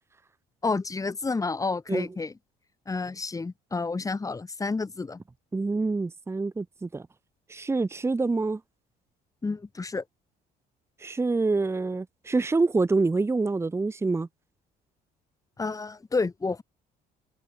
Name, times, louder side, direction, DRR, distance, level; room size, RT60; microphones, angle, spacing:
voice 1, 0.6-2.3 2.9-5.2 9.4-10.0 15.6-16.6, left 3 dB, 20° left, 1.9 m, -30 dB
voice 2, 5.5-7.0 7.5-8.6 11.0-14.3, right 3 dB, 15° right, 1.1 m, -26 dB
cardioid pair, 110°, 17 cm